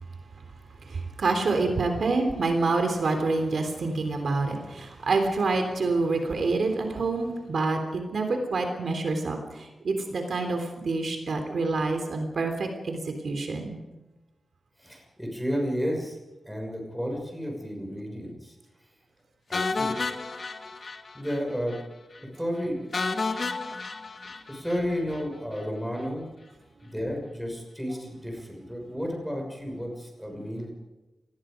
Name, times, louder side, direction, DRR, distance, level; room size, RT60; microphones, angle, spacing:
voice 1, 0.9-13.8, right 3 dB, 60° right, 4 dB, 3.4 m, -27 dB
voice 2, 14.8-16.2 16.5-18.5 19.5-19.9 21.1-21.8 22.3-22.9 23.4-23.6 24.5-26.3 26.8-30.7, equal, ahead, 1 dB, 6.1 m, -32 dB
sound 1, 19.5-21.4 21.7-21.8 22.2-22.3 22.9-25.2, left 3 dB, 45° left, 1.8 m, -31 dB
28.0 x 20.0 x 5.2 m, 1.1 s
wide cardioid pair, 160°, 0 cm